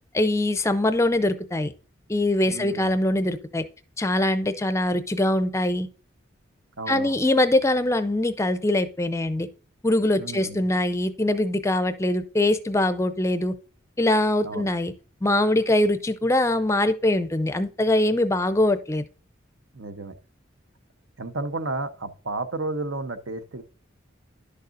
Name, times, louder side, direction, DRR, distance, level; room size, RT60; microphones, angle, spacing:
voice 1, 0.1-1.7 2.1-3.6 4.0-5.9 6.9-9.5 9.8-13.5 14.0-14.9 15.2-19.0, left 1 dB, 15° left, 0.4 m, -23 dB
voice 2, 2.4-3.0 6.8-7.2 10.2-10.7 14.4-14.7 19.7-20.1 21.2-23.6, right 2 dB, 80° right, 0.8 m, -32 dB
11.0 x 6.6 x 2.5 m
head